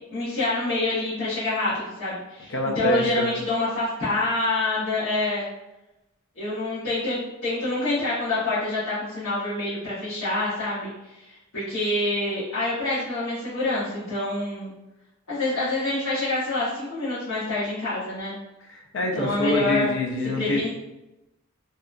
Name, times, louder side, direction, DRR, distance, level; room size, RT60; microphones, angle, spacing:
voice 1, 0.1-5.5 6.3-14.7 15.3-18.3 19.1-19.9 20.4-20.7, left 2 dB, 80° left, -13 dB, 1.0 m, -27 dB
voice 2, 2.5-3.4 18.6-20.7, equal, 60° left, 2 dB, 0.4 m, -26 dB
2.7 x 2.2 x 2.4 m, 0.96 s
head